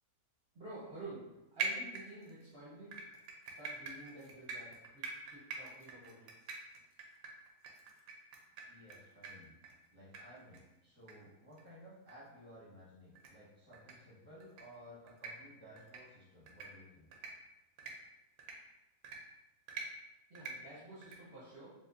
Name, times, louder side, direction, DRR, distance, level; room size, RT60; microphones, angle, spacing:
voice 1, 0.5-2.9 3.6-6.2 20.3-21.7, right 2 dB, 50° right, -8 dB, 0.9 m, -50 dB
sound 1, 1.6-2.4 2.9-9.0 9.2-9.3 9.6-9.7 10.1-10.2 10.5-10.6 11.1-11.2 11.5-11.6 12.1-12.2 13.2-13.3 13.7-13.9 14.4-14.6 15.1-15.3 15.8-16.0 16.5-16.7 17.1-17.3 17.8-17.9 18.4-18.5 19.0-19.2 19.7-19.9 20.4-20.5 21.0-21.2, right 5 dB, 75° right, 1.0 m, -43 dB
voice 2, 8.7-9.5 9.9-17.1, equal, 10° right, -7 dB, 1.0 m, -56 dB
4.6 x 2.4 x 2.5 m, 0.98 s
omnidirectional pair, 1.6 m